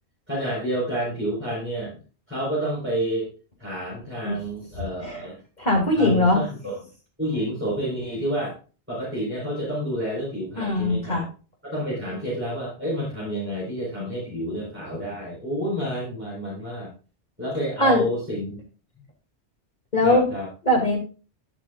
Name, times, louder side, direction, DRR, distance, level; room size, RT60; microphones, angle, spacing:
voice 1, 0.3-2.0 2.3-3.3 3.6-5.4 6.0-6.7 7.2-8.5 8.9-11.2 11.6-16.9 17.4-18.6 20.0-20.5, equal, 10° right, -8 dB, 4.7 m, -29 dB
voice 2, 5.6-6.4 10.6-11.2 17.8-18.0 19.9-20.3 20.6-21.0, left 1 dB, 40° left, 0 dB, 2.8 m, -20 dB
17.5 x 5.9 x 2.5 m, 0.35 s
omnidirectional pair, 1.1 m